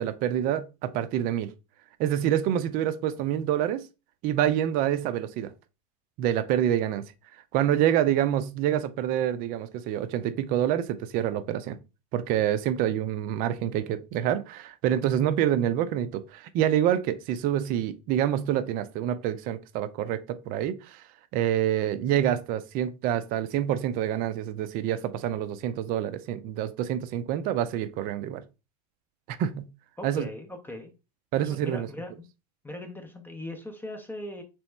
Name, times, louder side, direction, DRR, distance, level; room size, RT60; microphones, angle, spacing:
voice 1, 0.0-1.5 2.0-3.8 4.2-5.5 6.2-7.0 7.5-11.8 12.1-21.0 21.3-28.4 29.3-29.7 30.0-30.3 31.3-31.9, right 11 dB, 45° right, 0.5 m, -27 dB
voice 2, 30.0-30.9 31.4-32.1 32.6-34.4, left 1 dB, 10° left, 0.6 m, -39 dB
3.4 x 3.0 x 3.2 m
hypercardioid pair, 100°, 21 cm